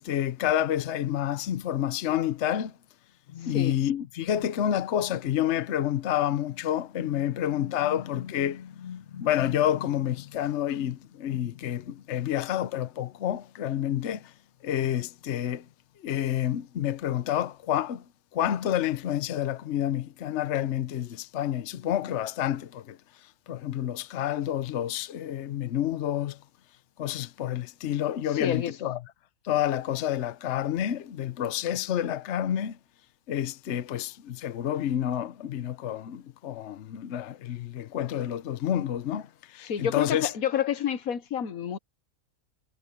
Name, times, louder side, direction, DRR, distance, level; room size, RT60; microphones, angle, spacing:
voice 1, 0.0-2.7 3.3-14.3 14.6-15.6 16.0-18.0 18.3-23.0 23.5-26.4 27.0-29.0 29.4-32.8 33.3-40.3, left 11 dB, 60° left, 1.0 m, -29 dB
voice 2, 3.4-3.8 28.3-28.9 39.6-41.8, left 9 dB, 80° left, 1.5 m, -29 dB
omnidirectional pair, 1.5 m